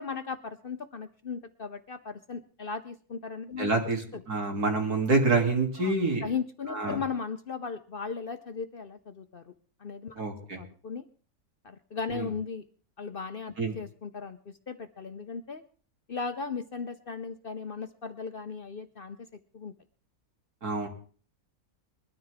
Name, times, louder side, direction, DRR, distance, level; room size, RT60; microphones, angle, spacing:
voice 1, 0.0-3.7 4.1-4.2 5.8-5.9 6.2-9.5 9.8-10.2 10.6-11.0 11.6-12.6 13.0-15.6 16.1-19.3 19.5-19.7, left 5 dB, 45° left, 9 dB, 0.8 m, -37 dB
voice 2, 3.6-6.3 6.7-7.0 10.2-10.6 12.1-12.3 13.6-13.8 20.6-20.9, right 3 dB, 80° right, 2 dB, 3.5 m, -27 dB
21.5 x 13.0 x 3.6 m, 0.41 s
omnidirectional pair, 1.6 m